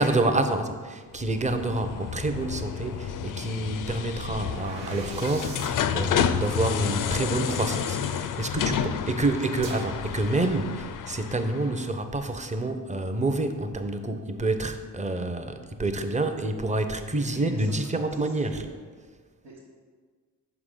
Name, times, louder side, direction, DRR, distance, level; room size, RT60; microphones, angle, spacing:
voice 1, 0.0-18.6, right 2 dB, 15° right, 7 dB, 0.6 m, -28 dB
sound 1, 1.1-11.9, left 8 dB, 45° left, 0.4 m, -30 dB
sound 2, 4.1-8.2 9.6-11.0, right 3 dB, 65° right, 1.0 m, -43 dB
voice 2, 17.1-17.8 18.1-18.8 19.4-19.6, right 2 dB, 80° right, -7 dB, 1.3 m, -43 dB
6.1 x 4.8 x 3.7 m, 1.5 s
hypercardioid pair, 40°, 48 cm